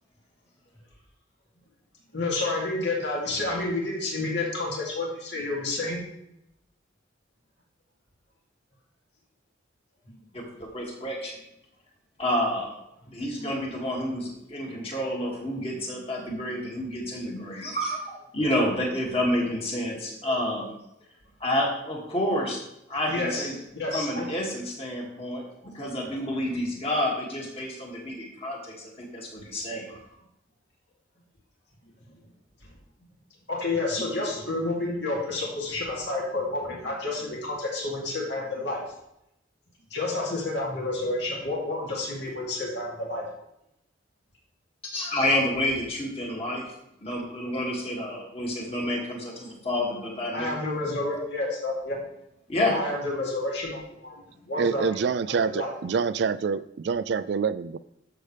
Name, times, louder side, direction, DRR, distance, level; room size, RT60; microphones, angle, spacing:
voice 1, 2.1-6.0 13.4-13.5 23.1-24.3 33.5-38.8 39.9-43.3 50.3-52.0 52.6-54.2 54.5-54.8 55.4-55.7, left 2 dB, 60° left, -3 dB, 2.7 m, -30 dB
voice 2, 10.3-11.4 12.2-12.7 13.1-20.7 21.4-22.6 22.9-23.5 23.9-30.0 44.9-46.6 47.0-50.5 52.5-52.7, left 1 dB, 30° left, -2 dB, 2.3 m, -29 dB
voice 3, 54.6-57.8, right 5 dB, 60° right, 15 dB, 0.3 m, -26 dB
13.0 x 6.8 x 3.4 m, 0.81 s
head